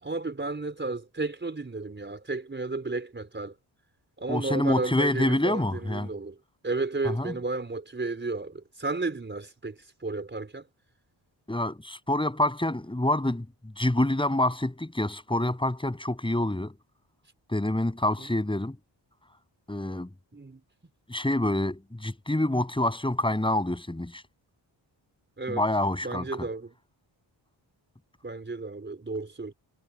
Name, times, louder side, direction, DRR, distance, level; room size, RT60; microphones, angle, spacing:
voice 1, 0.0-3.5 4.2-6.4 6.6-10.6 18.2-18.3 20.3-20.6 25.4-25.6 26.0-26.7 28.2-29.5, right 3 dB, 25° right, 4.5 m, -33 dB
voice 2, 4.3-6.1 7.0-7.3 11.5-13.5 13.8-16.7 17.5-18.8 19.7-20.1 21.1-24.2 25.5-26.5, left 1 dB, 10° left, 7.4 m, -27 dB
wide cardioid pair, 170°, 47 cm